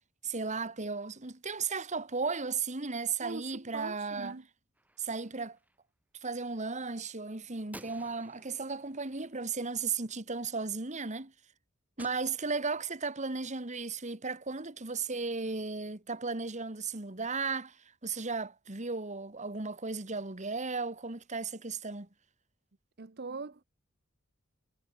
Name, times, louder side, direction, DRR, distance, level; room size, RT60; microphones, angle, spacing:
voice 1, 0.2-4.3 5.0-5.6 6.2-11.3 12.0-22.1, right 4 dB, 35° right, 2.1 m, -35 dB
voice 2, 3.2-4.5 23.0-23.6, right 4 dB, 50° right, 0.9 m, -42 dB
Gunshot gunfire, 4.7-5.8 7.7-10.1 12.0-13.0, right 1 dB, 10° right, 6.6 m, -55 dB
head